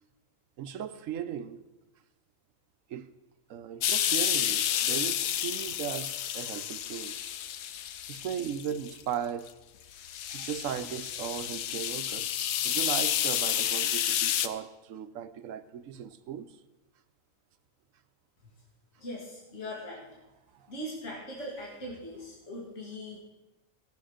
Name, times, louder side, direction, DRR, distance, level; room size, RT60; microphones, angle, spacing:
voice 1, 0.6-1.6 2.9-3.1 3.5-7.2 8.1-9.5 10.3-16.6 20.5-20.7, right 8 dB, 70° right, 1.0 m, -37 dB
sound 1, 3.8-9.0 9.5-9.6 10.0-14.5, left 10 dB, 80° left, 1.1 m, -30 dB
voice 2, 19.0-20.1 20.7-23.2, equal, 55° left, 2.4 m, -40 dB
18.0 x 6.4 x 5.0 m
omnidirectional pair, 1.5 m